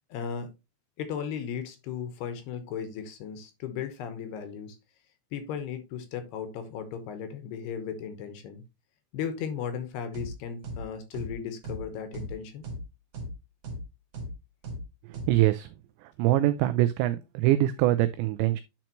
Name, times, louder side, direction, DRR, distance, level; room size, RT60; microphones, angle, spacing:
voice 1, 0.1-0.5 1.0-4.8 5.3-8.6 9.1-12.7, left 7 dB, 70° left, 2.7 m, -36 dB
sound 1, 10.1-10.3 10.6-10.8 11.1-11.3 11.6-11.8 12.1-12.3 12.6-12.8 13.1-13.3 13.6-13.8 14.1-14.3 14.6-14.8 15.1-15.3, right 1 dB, 50° right, 3.1 m, -36 dB
voice 2, 15.3-15.7 16.2-18.6, right 15 dB, 85° right, 2.5 m, -23 dB
10.5 x 4.4 x 3.0 m
omnidirectional pair, 5.5 m